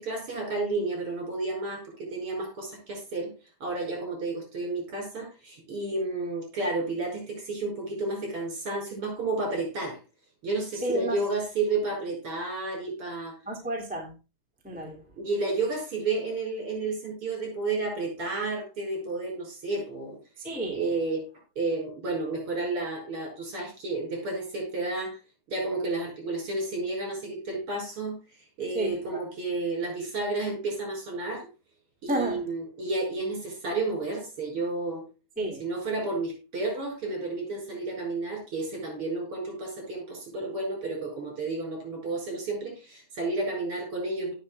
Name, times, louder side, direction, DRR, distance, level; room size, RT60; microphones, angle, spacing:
voice 1, 0.0-3.3 3.6-10.0 10.4-13.3 15.2-20.2 20.7-21.3 21.6-25.2 25.5-28.2 28.6-31.5 32.0-35.0 35.6-44.3, right 3 dB, 35° right, 6.0 m, -31 dB
voice 2, 10.8-11.2 13.5-14.1 14.6-15.0 20.4-20.9 28.7-29.2 32.1-32.5 35.4-35.6, right 1 dB, 5° right, 1.7 m, -31 dB
17.0 x 6.8 x 2.3 m
omnidirectional pair, 4.2 m